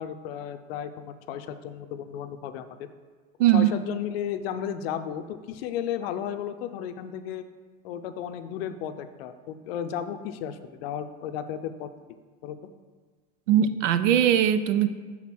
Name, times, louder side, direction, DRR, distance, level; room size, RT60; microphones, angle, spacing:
voice 1, 0.0-2.9 3.5-7.4 7.8-11.9 12.4-12.6, left 9 dB, 55° left, 9 dB, 0.6 m, -34 dB
voice 2, 3.4-3.7 13.5-14.9, right 10 dB, 85° right, 12 dB, 0.6 m, -20 dB
6.1 x 3.9 x 5.9 m, 1.5 s
supercardioid pair, 140°, 36 cm